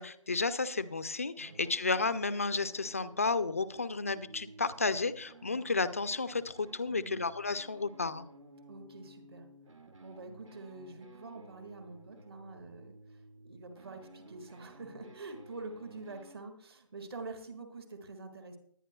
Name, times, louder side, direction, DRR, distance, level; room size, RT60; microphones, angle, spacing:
voice 1, 0.0-8.3, left 4 dB, 25° left, 14 dB, 0.4 m, -32 dB
sound 1, 1.5-16.4, right 2 dB, 70° right, 2.0 m, -55 dB
voice 2, 6.9-7.2 8.7-9.5 10.0-18.6, right 3 dB, 45° right, 6 dB, 1.9 m, -46 dB
20.0 x 9.9 x 2.3 m, 0.62 s
figure-of-eight pair, 160°, 17 cm